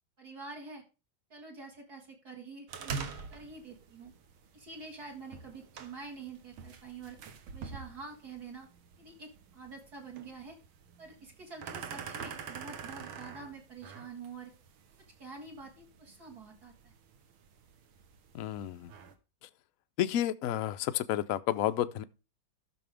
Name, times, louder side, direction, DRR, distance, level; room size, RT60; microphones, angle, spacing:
voice 1, 0.2-0.8 1.3-4.1 4.5-7.2 7.5-8.7 9.0-10.6 11.0-14.5 15.2-16.9, right 4 dB, 50° right, 2.4 m, -47 dB
sound 1, 2.7-19.1, right 6 dB, 85° right, 1.9 m, -46 dB
voice 2, 18.3-18.9 20.0-22.0, left 12 dB, 80° left, 0.7 m, -31 dB
13.5 x 6.3 x 3.5 m
omnidirectional pair, 2.2 m